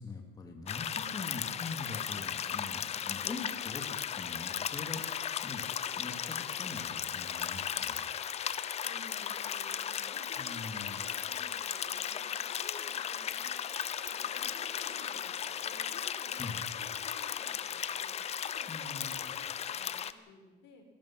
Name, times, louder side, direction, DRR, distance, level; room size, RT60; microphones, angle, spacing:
voice 1, 0.0-5.7 6.0-8.0 10.4-11.0 16.4-16.6 18.7-19.3, left 3 dB, 20° left, 2 dB, 2.5 m, -43 dB
sound 1, 0.7-20.1, left 9 dB, 35° left, 0.9 m, -36 dB
voice 2, 1.1-1.4 8.8-12.2 12.4-13.5 14.0-16.4 16.8-18.2 18.5-20.9, left 3 dB, 75° left, 3 dB, 5.5 m, -55 dB
Alarm, 7.5-16.1, right 6 dB, 85° right, 3.4 m, -59 dB
26.5 x 18.0 x 6.1 m, 1.2 s
cardioid pair, 155°, 18 cm